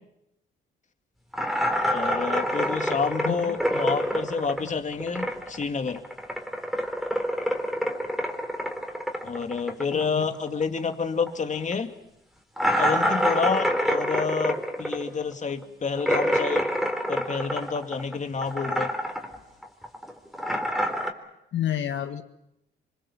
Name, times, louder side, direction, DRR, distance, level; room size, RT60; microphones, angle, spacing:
sound 1, 1.3-5.6 5.9-10.9 11.2-11.3 11.7-11.8 12.6-18.1 18.4-19.4 19.6-21.1, equal, ahead, 3.8 m, -27 dB
voice 1, 1.9-6.0 9.2-11.9 12.8-16.6 17.1-18.9, left 5 dB, 40° left, 6 dB, 2.5 m, -29 dB
voice 2, 3.2-3.5 9.9-10.4 21.5-22.2, left 11 dB, 70° left, 6 dB, 1.5 m, -30 dB
27.5 x 24.0 x 7.3 m, 0.84 s
cardioid pair, 90°, 20 cm